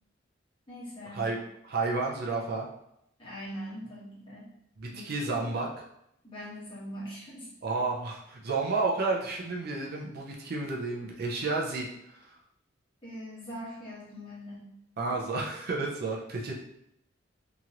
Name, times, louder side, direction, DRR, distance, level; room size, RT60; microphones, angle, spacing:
voice 1, 0.7-1.4 3.2-4.4 4.9-5.5 6.2-7.5 13.0-14.7, equal, 25° left, -9 dB, 1.3 m, -42 dB
voice 2, 1.7-2.7 4.8-5.7 7.6-12.3 15.0-16.5, right 3 dB, 50° right, -2 dB, 0.5 m, -31 dB
2.9 x 2.9 x 2.4 m, 0.78 s
head